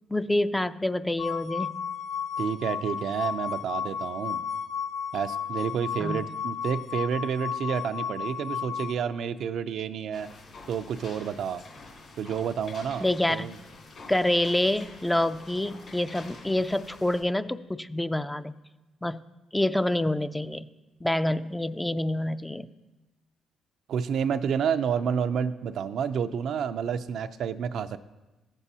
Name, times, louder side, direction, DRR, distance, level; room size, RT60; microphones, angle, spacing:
voice 1, 0.1-1.8 6.0-6.3 13.0-13.5 14.1-18.5 19.0-19.2 19.5-20.7 21.0-22.7, left 1 dB, 10° left, 12 dB, 0.3 m, -27 dB
sound 1, 1.2-8.9, left 7 dB, 90° left, 0.9 m, -33 dB
voice 2, 2.4-4.4 5.1-10.3 10.7-11.6 12.2-13.6 23.9-28.0, right 7 dB, 70° right, 9 dB, 0.4 m, -29 dB
sound 2, 10.1-17.2, left 3 dB, 60° left, 2.6 m, -47 dB
15.0 x 7.1 x 2.8 m, 1.1 s
cardioid pair, 90°, 0 cm